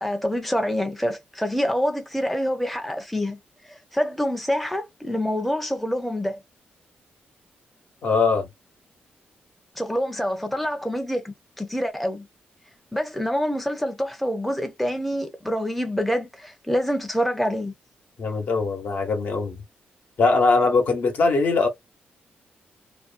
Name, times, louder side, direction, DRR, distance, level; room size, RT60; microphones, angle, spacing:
voice 1, 0.0-3.4 3.6-6.4 9.8-12.3 12.9-17.7, equal, ahead, 0.6 m, -26 dB
voice 2, 8.0-8.5 18.2-19.6 20.2-21.7, left 4 dB, 65° left, 0.9 m, -21 dB
2.5 x 2.2 x 2.4 m
cardioid pair, 100°, 3 cm